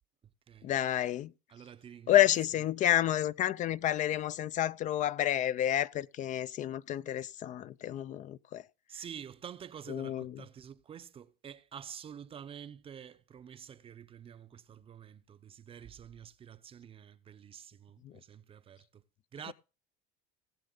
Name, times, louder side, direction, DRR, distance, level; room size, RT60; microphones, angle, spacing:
voice 1, 0.6-1.3 2.1-8.6 9.9-10.4 18.0-18.1, left 12 dB, 45° left, 0.5 m, -29 dB
voice 2, 1.5-2.3 8.9-19.0 19.3-19.5, right 8 dB, 30° right, 0.7 m, -48 dB
18.5 x 6.7 x 3.8 m
supercardioid pair, 110°, 19 cm